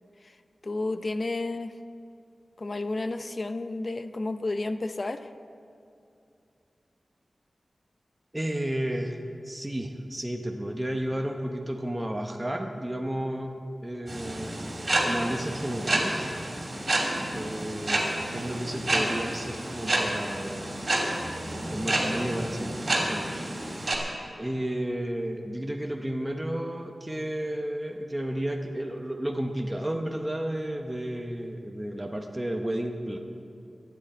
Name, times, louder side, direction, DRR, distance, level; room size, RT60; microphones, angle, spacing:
voice 1, 0.6-1.8 2.6-5.3 17.2-17.5, left 2 dB, 45° left, 10 dB, 0.6 m, -32 dB
voice 2, 8.3-14.8 15.0-16.3 17.3-20.9 21.6-23.4 23.8-24.0 24.4-33.2, right 1 dB, 15° right, 2 dB, 0.9 m, -32 dB
sound 1, 14.1-24.0, right 1 dB, 40° right, 2.8 m, -29 dB
23.5 x 9.3 x 4.3 m, 2.6 s
wide cardioid pair, 105°, 0 cm